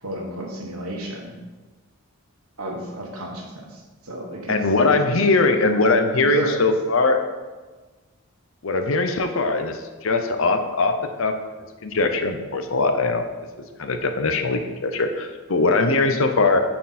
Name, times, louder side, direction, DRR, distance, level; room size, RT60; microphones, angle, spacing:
voice 1, 0.0-1.4 2.6-4.6 4.9-5.0 6.2-6.6 16.0-16.1, right 1 dB, 80° right, 0 dB, 1.4 m, -32 dB
voice 2, 4.5-7.2 8.6-11.3 11.8-13.2 13.8-16.6, left 3 dB, 65° left, 6 dB, 0.7 m, -21 dB
9.4 x 4.4 x 4.3 m, 1.3 s
head